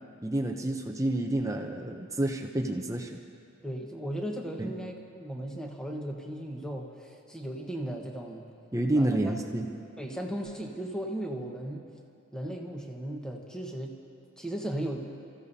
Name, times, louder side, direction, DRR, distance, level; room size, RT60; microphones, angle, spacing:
voice 1, 0.2-3.2 4.6-4.7 8.7-9.7, right 1 dB, 15° right, 2 dB, 0.6 m, -29 dB
voice 2, 3.6-8.5 8.9-9.4 10.0-11.8 12.3-13.9 14.4-15.0, right 1 dB, 5° left, 0 dB, 1.2 m, -36 dB
29.0 x 15.5 x 2.8 m, 2.4 s
head